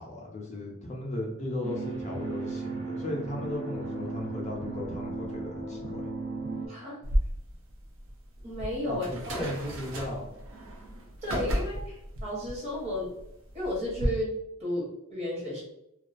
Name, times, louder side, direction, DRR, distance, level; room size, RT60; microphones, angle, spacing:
voice 1, 0.0-6.0 8.8-10.3, left 1 dB, 30° left, -1 dB, 0.4 m, -36 dB
sound 1, 1.6-6.7, right 3 dB, 85° right, 0.8 m, -36 dB
voice 2, 6.7-7.0 8.4-9.5 11.2-13.1 13.5-14.3 14.6-15.6, left 1 dB, 30° right, -4 dB, 0.9 m, -33 dB
sound 2, 7.0-14.1, equal, 60° right, 0.5 m, -34 dB
2.3 x 2.2 x 2.4 m, 0.81 s
head